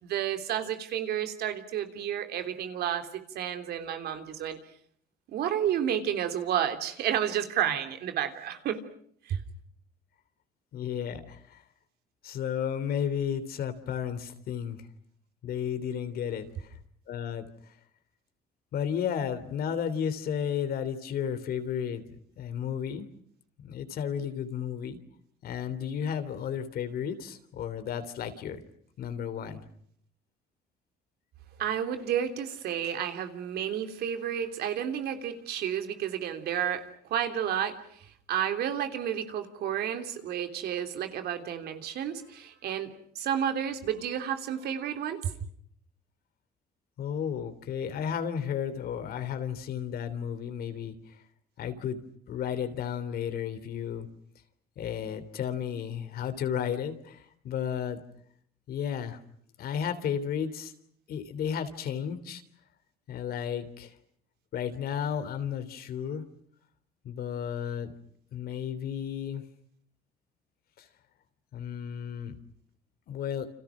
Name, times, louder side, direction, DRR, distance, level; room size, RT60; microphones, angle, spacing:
voice 1, 0.0-4.6 5.3-8.8 9.3-9.4 31.6-36.8 37.1-45.3, right 9 dB, 70° right, 7 dB, 3.2 m, -31 dB
voice 2, 10.7-11.6 12.2-14.9 15.4-16.7 17.1-17.5 18.7-22.0 22.4-23.1 23.6-25.0 25.4-28.6 29.0-29.6 47.0-50.9 51.6-52.0 52.3-54.1 54.8-58.0 58.7-59.2 59.6-60.7 61.1-62.4 63.1-63.9 64.5-66.2 67.0-67.9 68.3-69.4 70.8-70.9 71.5-72.4 73.1-73.5, left 8 dB, 65° left, 10 dB, 3.3 m, -33 dB
29.5 x 27.0 x 6.2 m, 0.65 s
cardioid pair, 110°, 17 cm